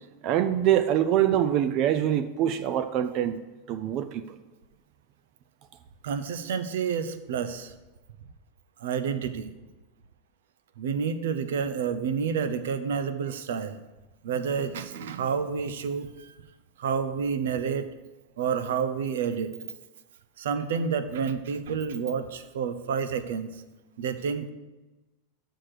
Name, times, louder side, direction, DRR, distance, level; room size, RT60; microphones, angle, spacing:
voice 1, 0.2-3.4 3.7-4.4, right 11 dB, 40° right, 10 dB, 0.4 m, -24 dB
voice 2, 6.0-7.7 8.8-9.5 10.8-13.8 14.2-16.3 16.8-17.9 18.4-19.5 20.4-23.6 24.0-24.5, right 6 dB, 85° right, 11 dB, 0.7 m, -29 dB
6.4 x 6.0 x 6.6 m, 1.1 s
supercardioid pair, 150°, 0 cm